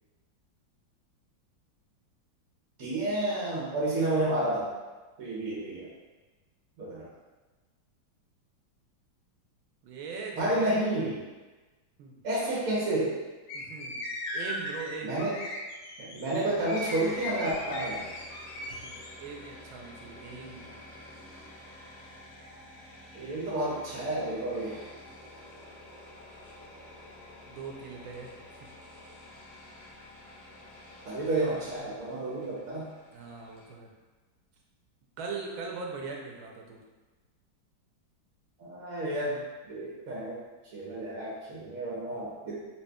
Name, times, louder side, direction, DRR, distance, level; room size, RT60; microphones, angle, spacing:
voice 1, 2.8-4.7 5.2-5.9 6.8-7.1 10.3-11.2 12.2-13.2 15.0-15.4 16.0-18.1 23.1-24.9 31.0-32.9 38.6-39.4 39.7-40.4 40.7-42.6, right 1 dB, 60° right, -7 dB, 0.9 m, -30 dB
voice 2, 9.8-10.7 12.0-12.2 13.5-15.2 18.7-20.8 27.5-28.4 33.1-33.9 35.2-36.8 42.4-42.5, right 4 dB, 80° right, 0 dB, 1.3 m, -41 dB
sound 1, 13.5-19.1, left 1 dB, 85° left, 1.5 m, -38 dB
sound 2, 16.4-33.7, left 1 dB, 60° left, 1.4 m, -50 dB
4.2 x 2.8 x 2.2 m, 1.2 s
omnidirectional pair, 2.2 m